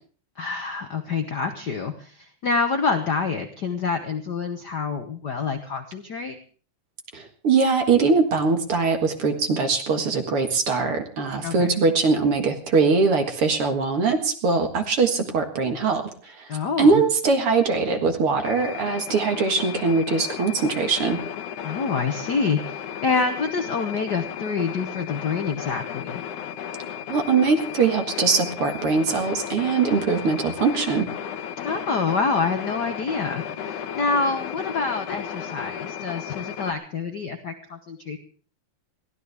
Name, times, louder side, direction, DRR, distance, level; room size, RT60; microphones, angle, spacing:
voice 1, 0.4-6.4 11.4-11.7 16.5-17.0 21.6-26.2 31.6-38.2, left 4 dB, 55° left, 6 dB, 1.1 m, -27 dB
voice 2, 7.1-16.5 16.8-21.2 27.1-31.1, right 4 dB, 50° right, 5 dB, 2.3 m, -22 dB
sound 1, 18.4-36.7, left 9 dB, 85° left, 2.7 m, -34 dB
22.0 x 15.5 x 3.5 m, 0.42 s
omnidirectional pair, 3.4 m